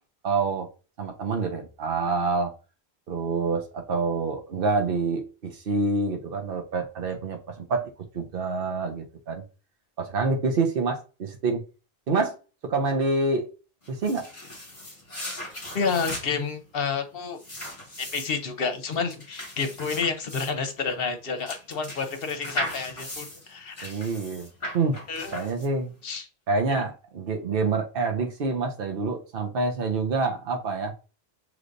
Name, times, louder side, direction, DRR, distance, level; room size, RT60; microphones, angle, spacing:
voice 1, 0.2-0.7 1.0-2.5 3.1-9.4 10.0-11.6 12.1-12.3 12.6-13.5 13.9-14.3 23.8-24.5 24.7-25.0 25.3-25.9 26.5-30.9, right 3 dB, 60° right, 1.0 m, -27 dB
sound 1, 13.8-26.0, equal, 30° left, 1.8 m, -38 dB
voice 2, 15.7-17.4 18.0-23.9 25.1-25.5 26.0-26.3 26.7-26.8, left 5 dB, 65° left, 1.0 m, -30 dB
6.4 x 3.2 x 2.6 m
omnidirectional pair, 1.1 m